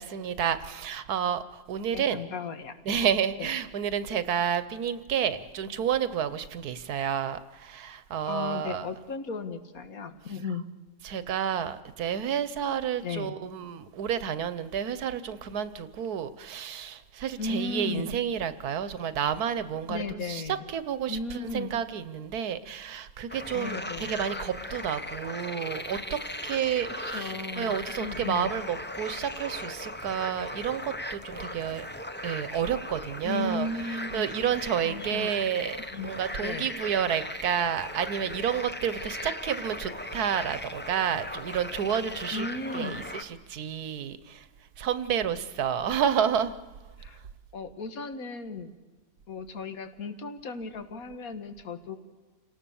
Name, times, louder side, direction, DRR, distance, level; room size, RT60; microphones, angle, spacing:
voice 1, 0.0-2.2 2.9-8.9 11.0-20.4 20.7-31.9 32.2-33.7 34.1-42.4 42.7-44.4 44.8-46.5, right 8 dB, 85° right, 13 dB, 1.4 m, -30 dB
voice 2, 1.9-2.7 3.4-3.5 8.3-10.6 13.0-13.3 17.4-18.2 19.9-20.6 21.1-21.7 23.5-24.2 27.1-28.5 33.2-34.3 34.8-35.3 35.8-36.1 36.4-36.7 42.3-43.0 47.0-47.2 47.5-48.7 49.3-52.0, left 3 dB, 70° left, 8 dB, 1.8 m, -35 dB
sound 1, 23.3-43.2, left 1 dB, 10° left, 0.6 m, -38 dB
28.5 x 18.5 x 7.0 m, 1.3 s
omnidirectional pair, 1.6 m